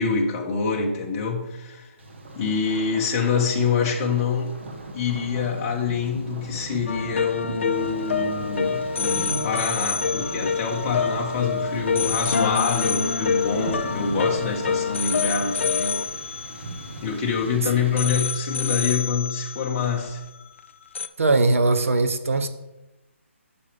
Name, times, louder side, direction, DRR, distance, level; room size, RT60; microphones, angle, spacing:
voice 1, 0.0-1.9 2.3-4.5 4.9-16.0 17.0-20.2, left 5 dB, 20° left, -1 dB, 1.1 m, -26 dB
Thunder, 2.0-18.0, right 2 dB, 55° right, 1.4 m, -37 dB
sound 1, 6.9-17.5 18.0-20.7 21.0-21.1, left 6 dB, 60° left, 0.5 m, -27 dB
voice 2, 21.2-22.5, right 3 dB, 75° right, 9 dB, 0.9 m, -20 dB
8.3 x 7.1 x 3.4 m, 0.97 s
hypercardioid pair, 165°, 7 cm